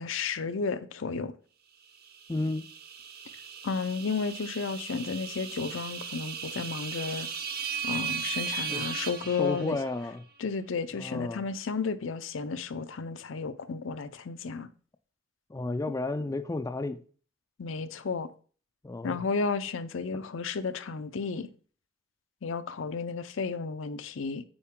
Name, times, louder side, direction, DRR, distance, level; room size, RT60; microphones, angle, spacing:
voice 1, 0.0-1.3 3.6-7.3 7.8-9.8 10.4-14.7 17.6-18.3 19.0-21.5 22.4-24.4, left 5 dB, 70° left, 0.6 m, -33 dB
sound 1, 2.0-10.1, right 6 dB, 55° right, 0.8 m, -37 dB
voice 2, 2.3-2.7 8.7-10.2 10.9-11.4 15.5-17.0 18.8-19.2 20.1-20.2, left 2 dB, 15° left, 0.4 m, -33 dB
8.8 x 4.6 x 3.7 m
head